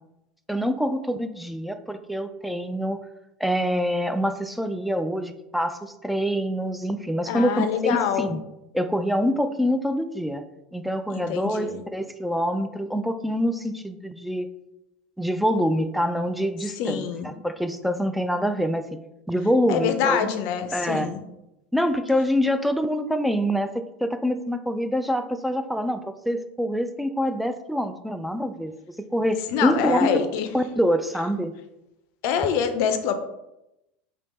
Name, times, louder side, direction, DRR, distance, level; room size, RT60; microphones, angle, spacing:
voice 1, 0.5-3.0 3.4-8.4 8.7-10.4 10.7-14.5 15.2-18.8 19.3-20.3 20.7-21.1 21.7-23.7 24.0-28.7 29.1-30.2 30.5-31.5, equal, ahead, 8 dB, 0.3 m, -25 dB
voice 2, 7.3-8.3 11.1-11.8 16.8-17.3 19.7-21.2 29.5-30.5 32.2-33.1, left 8 dB, 55° left, 8 dB, 0.5 m, -25 dB
3.3 x 2.7 x 4.2 m, 0.89 s
figure-of-eight pair, 75°, 6 cm